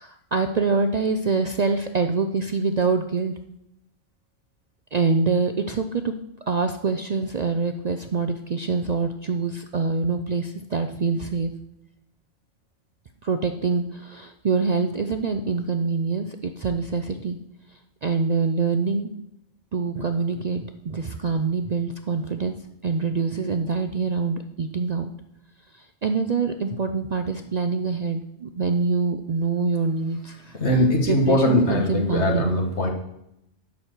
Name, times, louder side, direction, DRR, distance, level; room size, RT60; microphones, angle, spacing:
voice 1, 0.0-3.4 4.9-6.1 6.5-11.5 13.2-17.4 18.0-19.1 19.7-25.1 25.7-30.6 31.1-32.5, right 4 dB, 45° right, 7 dB, 0.5 m, -25 dB
voice 2, 30.6-32.9, left 1 dB, 65° left, 2 dB, 2.0 m, -21 dB
11.5 x 4.5 x 8.1 m, 0.81 s
omnidirectional pair, 1.2 m